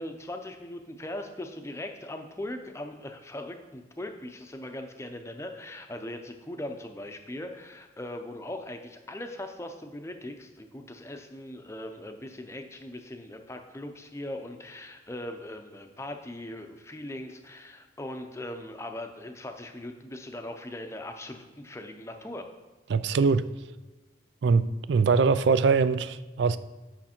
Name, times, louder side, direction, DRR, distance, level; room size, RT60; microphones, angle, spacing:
voice 1, 0.0-22.5, left 1 dB, 15° left, 0.6 m, -40 dB
voice 2, 22.9-23.5 24.4-26.6, right 4 dB, 70° right, 0.4 m, -23 dB
8.5 x 5.8 x 4.4 m
head